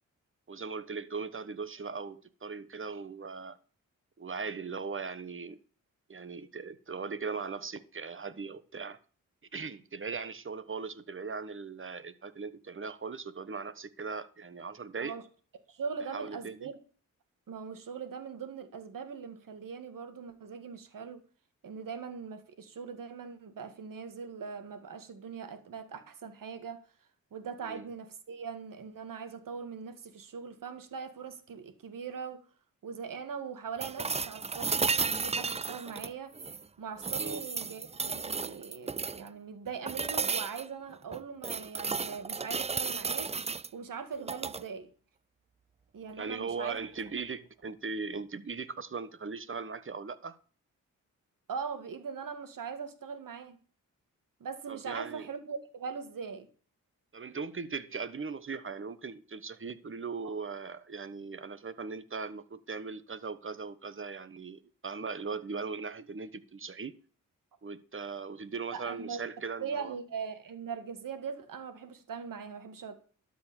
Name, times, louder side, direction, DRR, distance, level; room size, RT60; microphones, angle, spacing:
voice 1, 0.5-3.6 4.2-5.6 6.1-9.0 9.5-15.1 16.1-16.7 27.6-27.9 37.2-37.4 46.2-50.4 54.7-55.2 57.1-66.9 67.6-69.9, right 4 dB, 35° right, 1.2 m, -39 dB
voice 2, 15.7-16.8 17.5-21.2 21.6-26.8 27.3-32.4 32.8-36.3 36.8-43.3 43.7-44.9 45.9-46.8 51.5-53.6 54.4-56.5 60.2-60.3 68.7-69.2 69.6-72.9, right 6 dB, 70° right, 1.9 m, -41 dB
sound 1, 33.8-36.6 37.0-39.3 39.9-40.7 41.1-43.7 44.2-44.6 46.7-46.8, right 4 dB, 20° right, 0.4 m, -33 dB
12.5 x 5.2 x 7.0 m
cardioid pair, 55°, 34 cm